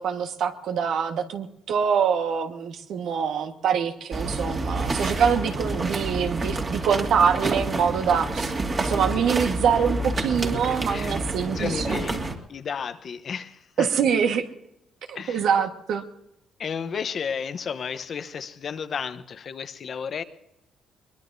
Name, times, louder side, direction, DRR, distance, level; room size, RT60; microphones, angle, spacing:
voice 1, 0.0-8.5 8.8-12.0 13.8-14.5 15.1-16.0, right 7 dB, 75° right, 1.4 m, -24 dB
sound 1, 4.1-12.4, right 2 dB, 35° right, 2.2 m, -28 dB
voice 2, 11.5-12.2 12.5-13.9 15.1-15.5 16.6-20.2, left 6 dB, 55° left, 0.9 m, -32 dB
22.5 x 21.0 x 2.7 m
cardioid pair, 90°, 0 cm